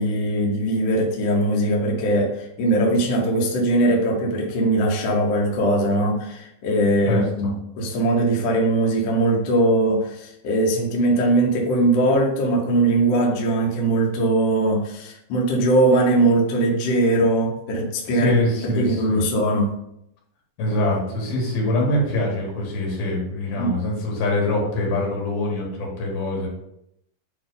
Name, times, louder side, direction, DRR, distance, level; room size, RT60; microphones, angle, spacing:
voice 1, 0.0-18.4 18.6-19.8 23.6-23.7, right 1 dB, 60° left, -2 dB, 1.7 m, -20 dB
voice 2, 18.1-19.2 20.6-26.5, left 1 dB, 80° left, -2 dB, 3.5 m, -24 dB
8.4 x 3.1 x 3.9 m, 0.79 s
omnidirectional pair, 4.2 m